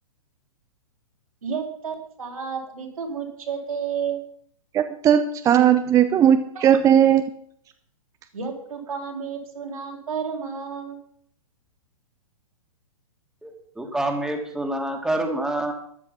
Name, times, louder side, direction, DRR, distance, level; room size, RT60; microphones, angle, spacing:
voice 1, 1.4-4.2 6.5-6.8 8.3-11.0, right 6 dB, 75° right, 1 dB, 4.1 m, -31 dB
voice 2, 4.7-7.2, right 9 dB, 20° right, 9 dB, 0.7 m, -17 dB
voice 3, 13.4-15.7, right 1 dB, 5° right, 2 dB, 2.3 m, -27 dB
13.5 x 10.5 x 6.0 m, 0.65 s
figure-of-eight pair, 115°, 18 cm